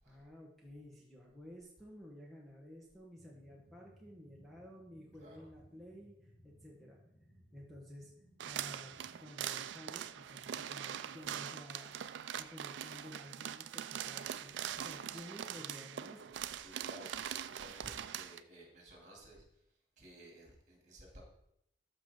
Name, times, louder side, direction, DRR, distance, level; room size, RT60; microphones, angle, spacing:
voice 1, 0.0-6.2 6.4-7.0 7.5-8.1 8.4-12.0 12.4-16.2, equal, ahead, -4 dB, 1.2 m, -53 dB
sound 1, 3.1-9.2, equal, 65° left, 3.1 m, -63 dB
sound 2, 8.4-18.4, right 10 dB, 90° right, 0.4 m, -42 dB
voice 2, 14.2-14.5 16.5-19.6 20.0-21.3, right 1 dB, 45° right, -1 dB, 2.8 m, -55 dB
13.5 x 5.3 x 3.7 m, 0.76 s
head